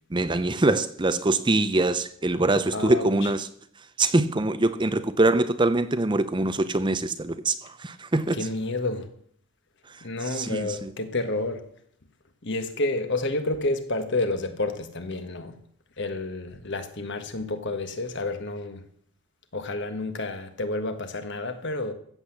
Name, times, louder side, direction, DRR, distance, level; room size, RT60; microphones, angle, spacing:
voice 1, 0.1-3.5 4.0-8.5 9.9-10.9, right 2 dB, 20° right, 0.6 m, -24 dB
voice 2, 2.7-3.1 8.3-9.1 10.0-11.7 12.4-15.6 16.0-18.8 19.5-21.9, left 2 dB, 50° left, 1.4 m, -30 dB
14.5 x 8.0 x 7.2 m
head